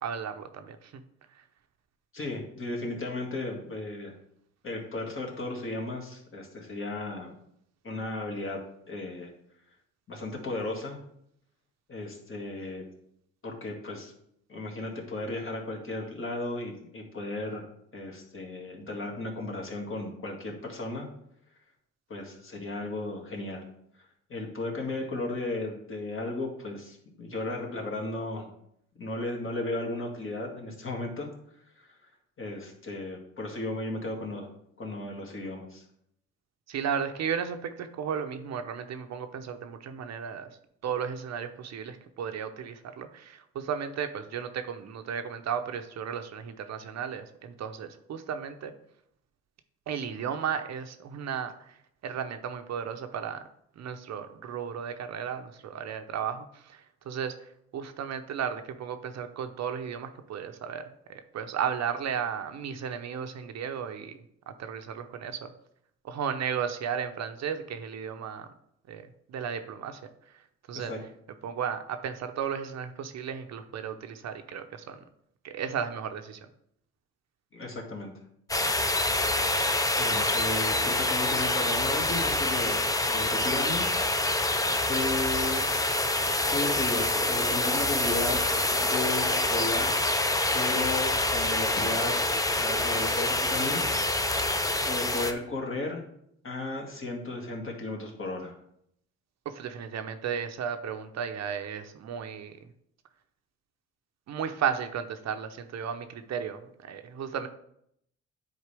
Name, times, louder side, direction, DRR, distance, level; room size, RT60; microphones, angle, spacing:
voice 1, 0.0-1.0 36.7-40.5 40.8-48.7 49.9-51.8 52.0-53.4 53.8-57.3 57.7-60.9 61.3-64.2 64.5-65.5 66.0-68.5 68.9-69.0 69.3-70.0 70.7-70.9 71.4-75.0 75.4-76.4 99.4-102.6 104.3-107.5, right 7 dB, 60° right, 8 dB, 0.7 m, -34 dB
voice 2, 2.1-4.1 4.6-7.3 7.8-8.6 8.9-9.3 10.1-11.0 11.9-12.8 13.4-14.1 14.5-17.7 17.9-21.1 22.1-23.7 24.3-28.5 29.0-31.3 31.8-32.0 32.4-34.5 34.8-35.8 70.7-71.0 77.5-78.1 80.0-83.9 84.9-85.6 86.5-88.4 88.8-90.0 90.5-92.2 92.6-94.0 94.5-96.0 96.4-98.5, left 2 dB, 45° left, 0 dB, 1.9 m, -35 dB
sound 1, 78.5-95.3, left 2 dB, 10° left, 0.6 m, -26 dB
9.7 x 4.3 x 3.4 m, 0.73 s
cardioid pair, 90°, 30 cm